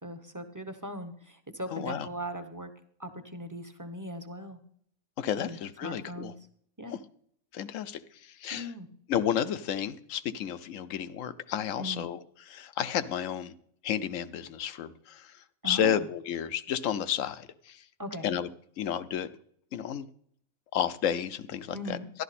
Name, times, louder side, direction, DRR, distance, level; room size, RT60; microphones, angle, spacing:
voice 1, 0.0-2.7 3.0-4.6 5.4-6.3 6.8-7.0 8.5-8.9 11.8-12.0 15.6-16.1 18.0-18.4 21.7-22.1, equal, 15° right, 7 dB, 0.8 m, -39 dB
voice 2, 1.7-2.1 5.2-6.3 6.9-7.0 7.5-8.7 9.1-13.5 13.8-17.8 18.2-18.5 18.8-19.3 19.7-20.1 20.7-22.0, left 9 dB, 70° left, 15 dB, 1.0 m, -32 dB
13.0 x 11.5 x 4.2 m, 0.64 s
omnidirectional pair, 1.5 m